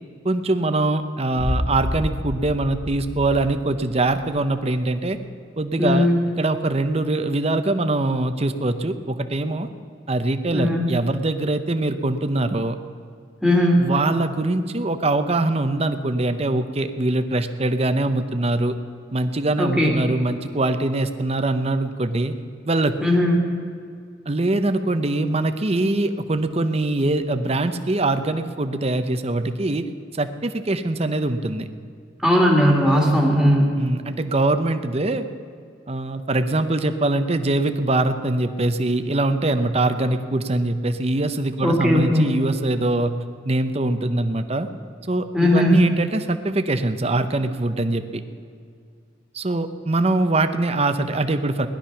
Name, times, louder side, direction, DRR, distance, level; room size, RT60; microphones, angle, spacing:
voice 1, 0.2-5.2 5.6-6.1 6.4-9.7 10.1-12.8 13.8-18.7 19.1-22.4 22.7-22.9 24.3-29.9 30.1-31.7 33.8-35.2 35.9-43.1 43.4-44.7 45.1-48.2 49.3-51.7, right 2 dB, 35° right, 9 dB, 0.8 m, -23 dB
Boom, 1.4-4.3, equal, 40° left, 2.8 m, -29 dB
voice 2, 5.8-6.2 10.5-10.9 13.4-13.8 19.6-20.0 23.0-23.5 32.2-33.7 41.6-42.4 45.3-45.8, equal, 5° left, -3 dB, 2.0 m, -18 dB
18.0 x 12.0 x 5.8 m, 2.2 s
head